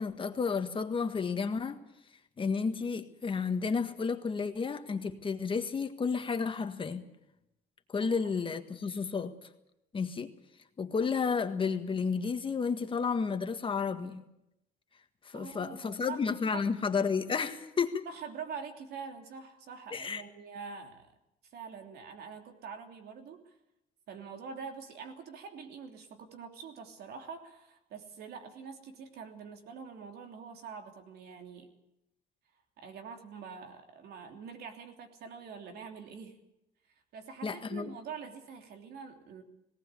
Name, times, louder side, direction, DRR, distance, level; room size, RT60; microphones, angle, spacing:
voice 1, 0.0-1.8 2.4-7.0 7.9-9.3 9.9-10.3 10.8-14.2 15.2-18.0 19.9-20.2 37.4-37.9, left 5 dB, 30° left, 7 dB, 1.6 m, -32 dB
voice 2, 15.3-16.2 16.5-16.7 18.0-21.1 21.5-23.5 24.1-31.7 32.8-36.4 37.1-39.4, right 6 dB, 70° right, 4 dB, 3.1 m, -45 dB
18.5 x 18.5 x 8.3 m, 0.85 s
cardioid pair, 110°, 17 cm